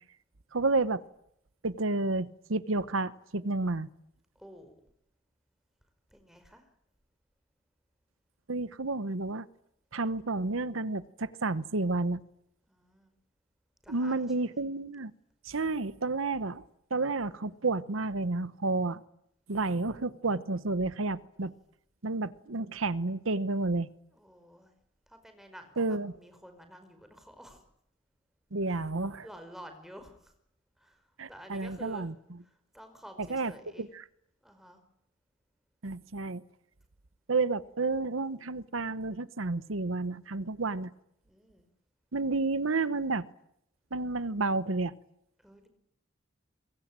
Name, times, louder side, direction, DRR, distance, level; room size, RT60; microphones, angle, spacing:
voice 1, 0.5-1.0 1.6-3.9 8.5-9.5 9.9-12.2 13.9-15.1 15.5-16.6 16.9-19.0 19.5-21.5 22.0-23.9 25.8-26.1 28.5-29.2 31.2-32.1 33.3-33.5 33.8-34.0 35.8-36.4 37.3-40.9 42.1-43.3 43.9-44.9, right 3 dB, 90° right, 1.0 m, -30 dB
voice 2, 4.3-4.7 6.1-6.7 12.7-13.1 13.8-14.6 24.1-24.7 25.1-27.6 28.7-30.3 30.8-32.1 32.4-33.9 34.4-34.8 41.2-41.7 45.4-45.7, equal, ahead, 5.0 m, -51 dB
26.5 x 22.5 x 8.9 m
head